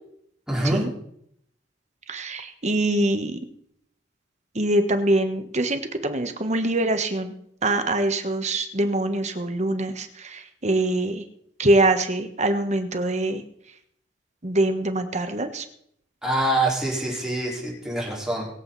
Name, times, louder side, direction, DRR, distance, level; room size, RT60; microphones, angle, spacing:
voice 1, 0.5-0.8 16.2-18.5, right 1 dB, 5° right, -4 dB, 4.5 m, -25 dB
voice 2, 2.1-3.4 4.5-7.3 7.6-11.2 11.6-13.4 14.4-15.6, right 1 dB, 40° right, 7 dB, 1.3 m, -24 dB
23.5 x 8.0 x 4.1 m, 0.70 s
head